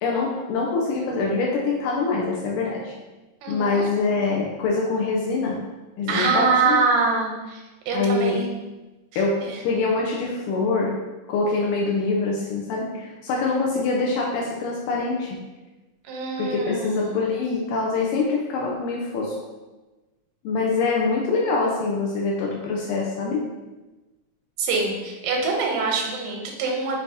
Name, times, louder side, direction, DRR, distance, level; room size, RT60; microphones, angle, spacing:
voice 1, 0.0-2.9 3.5-5.6 6.0-6.8 7.9-8.4 9.2-10.9 11.3-15.4 16.4-19.4 20.4-23.4, left 3 dB, 80° left, -2 dB, 2.0 m, -24 dB
voice 2, 3.4-3.9 6.1-7.6 7.9-8.5 9.4-9.5 16.1-17.1 24.6-27.0, right 4 dB, 90° right, 0 dB, 2.3 m, -24 dB
6.6 x 2.7 x 2.6 m, 1.1 s
omnidirectional pair, 3.8 m